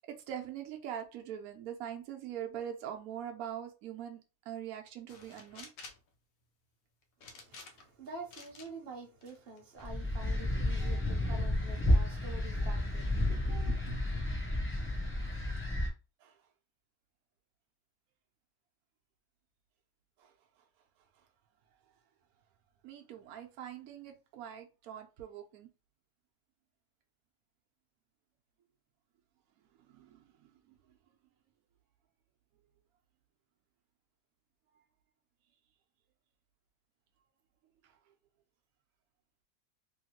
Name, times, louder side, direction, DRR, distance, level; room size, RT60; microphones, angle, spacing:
voice 1, 0.1-4.2 4.5-5.7 16.2-16.3 20.2-20.3 22.8-25.7 29.9-30.8, right 10 dB, 80° right, 1.1 m, -43 dB
sound 1, 5.1-6.1 7.2-8.0 8.3-8.7 9.2-9.9, left 4 dB, 70° left, 1.1 m, -51 dB
voice 2, 7.2-14.0, right 2 dB, 50° right, 0.8 m, -47 dB
sound 2, 9.8-15.9, left 1 dB, 15° left, 0.6 m, -31 dB
3.0 x 2.8 x 2.8 m
omnidirectional pair, 1.6 m